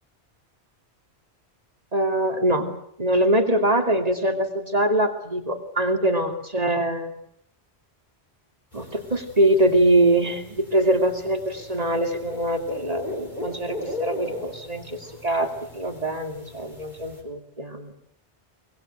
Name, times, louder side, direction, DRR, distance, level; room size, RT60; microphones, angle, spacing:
voice 1, 1.9-2.7 3.0-7.1 8.7-18.1, right 1 dB, 35° right, 5 dB, 2.8 m, -23 dB
sound 1, 8.7-17.2, left 1 dB, 45° left, 4.8 m, -38 dB
24.5 x 20.5 x 7.9 m, 0.70 s
omnidirectional pair, 1.1 m